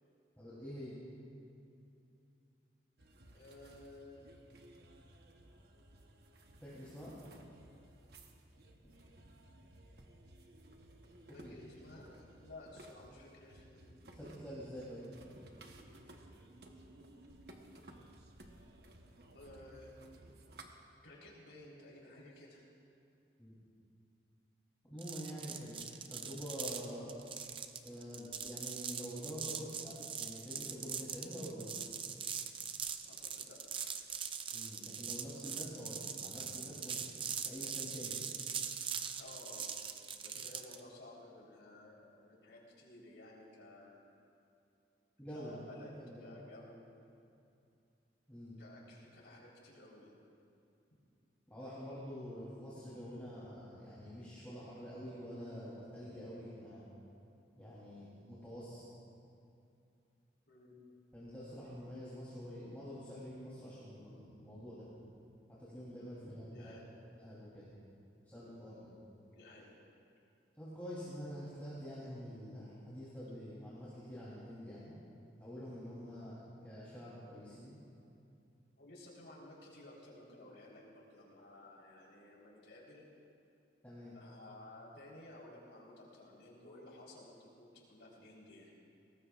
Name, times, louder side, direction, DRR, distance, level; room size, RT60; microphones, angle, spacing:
voice 1, 0.4-1.0 6.6-7.1 11.3-11.5 14.1-15.0 23.4-23.5 24.9-25.8 26.1-27.2 27.8-31.7 34.5-37.0 37.4-38.2 45.2-46.3 48.3-48.5 51.5-56.9 57.6-58.9 61.1-64.9 65.6-66.8 67.2-67.7 68.2-69.0 70.6-74.9 75.4-77.8 83.8-84.1, equal, 10° left, -10 dB, 3.3 m, -47 dB
sound 1, 3.0-20.7, right 1 dB, 65° right, 1.1 m, -58 dB
voice 2, 3.3-4.3 11.3-13.8 19.3-19.9 21.0-22.7 33.0-33.6 39.2-39.7 40.2-44.0 45.3-45.9 46.2-46.9 48.6-50.2 60.5-60.7 66.4-66.9 69.3-69.7 77.3-77.4 78.8-83.0 84.1-88.7, left 2 dB, 85° left, -3 dB, 3.9 m, -55 dB
sound 2, 25.0-40.8, right 7 dB, 30° right, 0.5 m, -42 dB
21.5 x 19.0 x 2.5 m, 2.6 s
head